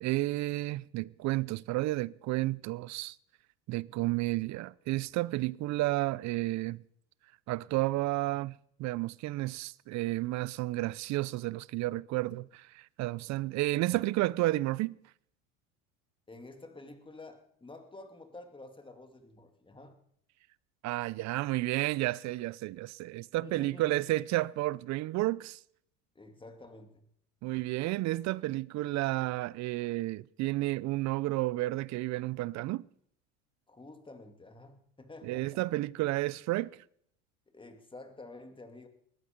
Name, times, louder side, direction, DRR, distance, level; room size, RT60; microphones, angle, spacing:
voice 1, 0.0-3.2 3.7-6.8 7.5-15.0 20.8-25.6 27.4-32.9 35.2-36.8, right 18 dB, 50° right, 0.6 m, -31 dB
voice 2, 16.3-20.0 23.4-24.2 26.1-27.1 33.7-35.6 37.5-38.9, left 2 dB, 15° left, 2.5 m, -50 dB
19.5 x 14.0 x 5.3 m
supercardioid pair, 100°, 37 cm